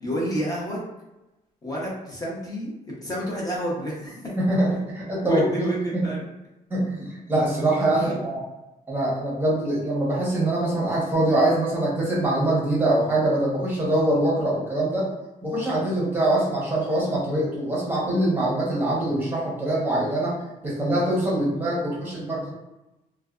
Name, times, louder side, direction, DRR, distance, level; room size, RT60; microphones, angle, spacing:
voice 1, 0.0-0.9 1.6-2.7 3.0-4.1 5.2-6.2, right 1 dB, 25° left, -5 dB, 0.8 m, -29 dB
voice 2, 4.4-6.1 6.7-8.4 8.9-15.1 15.4-20.4 20.6-22.5, right 1 dB, 10° right, -5 dB, 0.9 m, -24 dB
2.5 x 2.2 x 2.4 m, 0.98 s
cardioid pair, 130°, 16 cm